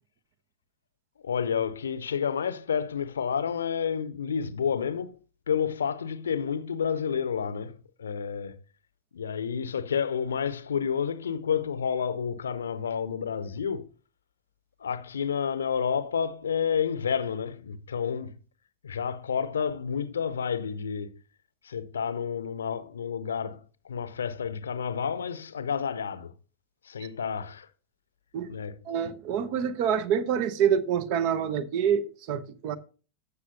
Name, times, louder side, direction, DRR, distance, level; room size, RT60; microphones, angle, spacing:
voice 1, 1.2-5.2 5.5-8.6 9.1-13.9 14.8-18.3 18.8-21.2 21.6-26.3 26.8-27.7 28.5-28.7, left 7 dB, 70° left, 0.7 m, -30 dB
voice 2, 28.8-32.8, right 8 dB, 45° right, 0.8 m, -26 dB
14.5 x 6.1 x 2.7 m
figure-of-eight pair, 90°, 0 cm